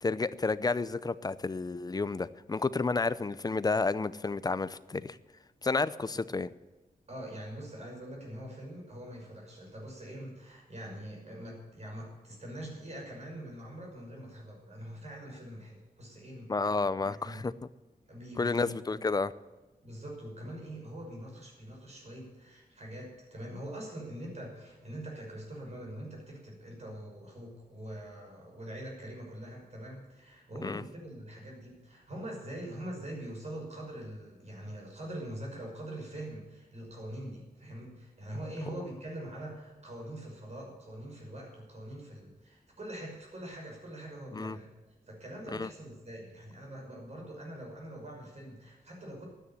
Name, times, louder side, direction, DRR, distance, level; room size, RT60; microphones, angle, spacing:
voice 1, 0.0-5.2 5.6-6.5 16.5-17.5 18.4-19.3 30.6-30.8 38.7-38.8 44.3-44.6 45.5-45.7, left 3 dB, 25° left, 15 dB, 0.6 m, -31 dB
voice 2, 7.1-17.5 18.1-19.0 19.8-44.7 45.1-49.2, right 1 dB, 45° right, 0 dB, 6.1 m, -43 dB
12.5 x 9.9 x 9.2 m, 1.2 s
wide cardioid pair, 135°, 15 cm